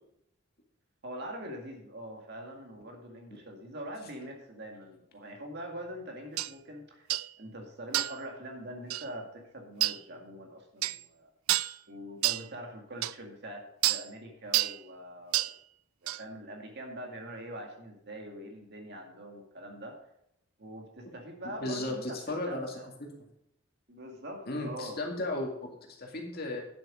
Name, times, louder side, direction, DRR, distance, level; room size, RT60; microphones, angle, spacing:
voice 1, 1.0-7.1 7.4-11.6 11.9-15.5 16.0-20.0 20.6-22.2 22.5-22.9 23.9-25.0, equal, 55° right, 2 dB, 2.1 m, -43 dB
sound 1, 6.4-6.5 7.1-7.3 7.9-8.2 8.9-9.1 9.8-10.0 10.8-11.0 11.5-11.8 12.2-12.5 13.0-13.1 13.8-14.1 14.5-14.8 15.3-15.6 16.1-16.2, right 16 dB, 90° right, 0.3 m, -28 dB
voice 2, 21.4-22.7 23.0-23.1 24.5-26.6, left 1 dB, 50° left, 1 dB, 2.2 m, -35 dB
10.0 x 8.0 x 5.0 m, 0.76 s
head